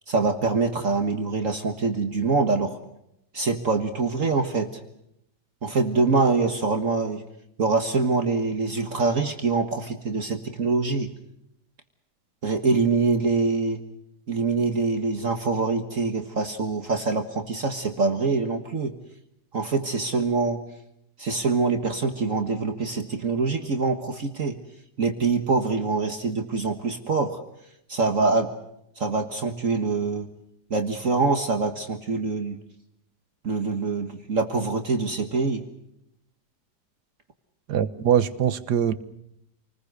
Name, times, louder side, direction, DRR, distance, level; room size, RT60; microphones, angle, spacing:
voice 1, 0.1-2.8 3.3-4.8 5.6-7.2 7.6-11.1 12.4-13.8 14.3-18.9 19.5-20.6 21.2-24.6 25.0-27.4 27.9-28.5 29.0-30.3 30.7-32.6 33.4-35.6, right 4 dB, 50° right, 6 dB, 1.9 m, -24 dB
voice 2, 37.7-38.9, right 9 dB, 70° right, 13 dB, 1.7 m, -22 dB
28.0 x 20.5 x 6.6 m, 0.81 s
omnidirectional pair, 1.9 m